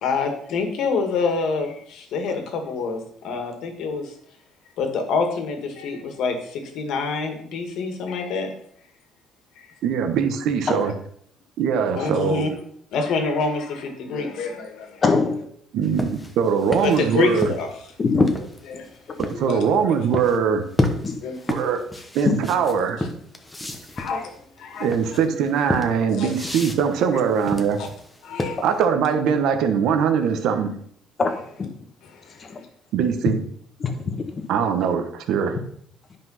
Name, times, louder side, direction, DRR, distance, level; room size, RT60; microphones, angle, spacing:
voice 1, 0.0-4.1 4.8-8.5 10.8-10.9 11.9-12.5 12.9-15.0 16.8-17.7 18.7-19.6 21.2-21.4 22.6-23.1 24.0-24.3 24.6-24.9 26.2-26.3 27.8-27.9 28.2-28.6 32.1-32.4, left 4 dB, 65° left, 5 dB, 2.0 m, -27 dB
voice 2, 9.8-10.9 11.6-12.5 15.7-17.5 19.4-20.6 21.5-21.8 22.1-23.0 24.8-27.8 28.4-30.7 32.9-33.4 34.5-35.5, right 7 dB, 70° right, 6 dB, 1.1 m, -22 dB
voice 3, 15.0-15.4 18.0-18.3 21.0-21.1 22.3-22.4 31.2-31.7 32.4-32.6 33.8-34.4, left 4 dB, 30° left, 6 dB, 1.4 m, -23 dB
sound 1, 15.8-19.4 20.1-20.4 20.8-28.8, left 1 dB, 10° left, 1.1 m, -29 dB
10.5 x 5.4 x 5.7 m, 0.66 s
cardioid pair, 140°, 0 cm